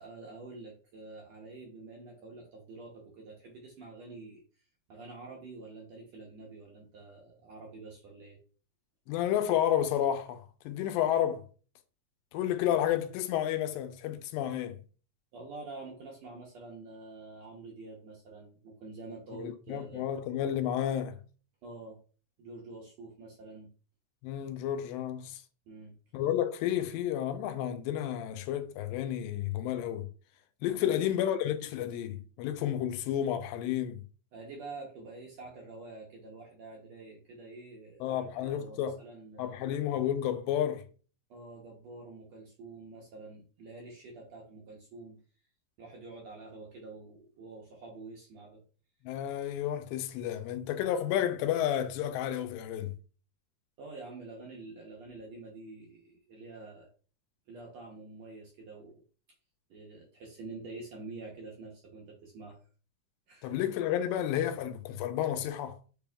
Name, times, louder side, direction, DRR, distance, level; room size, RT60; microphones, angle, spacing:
voice 1, 0.0-4.4 4.9-8.4 15.3-20.1 21.6-22.0 22.4-23.7 25.7-25.9 30.7-31.0 34.3-39.6 41.3-45.2 45.8-48.6 53.8-56.9 57.5-59.0 59.7-62.6 63.3-63.5, right 3 dB, 70° right, 1.7 m, -47 dB
voice 2, 9.1-11.5 12.3-14.8 19.4-21.2 24.2-25.4 26.1-30.1 30.6-34.0 38.0-39.0 39.4-40.9 49.0-53.0 63.4-65.8, left 11 dB, 85° left, 2.3 m, -31 dB
6.6 x 3.4 x 2.3 m
omnidirectional pair, 4.0 m